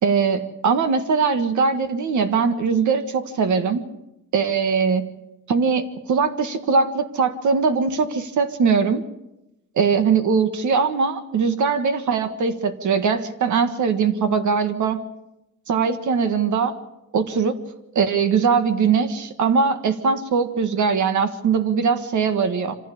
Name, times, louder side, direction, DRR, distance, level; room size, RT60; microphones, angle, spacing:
voice 1, 0.0-3.8 4.3-5.1 5.5-9.0 9.7-15.0 15.7-16.7 17.1-17.6 17.9-22.7, right 5 dB, 55° right, 9 dB, 1.7 m, -21 dB
25.5 x 15.5 x 8.6 m, 0.91 s
cardioid pair, 140°, 34 cm